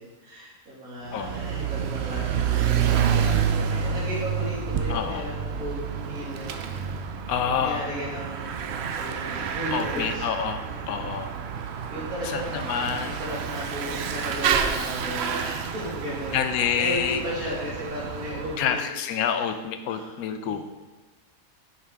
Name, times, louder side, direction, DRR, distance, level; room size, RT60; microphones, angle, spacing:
voice 1, 0.0-6.5 7.4-10.2 10.6-11.1 11.9-16.4 16.8-19.5 19.9-20.6, equal, 80° right, -6 dB, 2.6 m, -35 dB
Bicycle / Mechanisms, 1.1-18.7, right 7 dB, 65° right, 0.7 m, -29 dB
voice 2, 4.9-5.2 7.3-7.9 9.7-11.3 12.2-13.1 16.3-17.2 18.6-20.6, left 8 dB, 85° left, 9 dB, 1.1 m, -27 dB
7.4 x 5.6 x 3.5 m, 1.2 s
omnidirectional pair, 1.5 m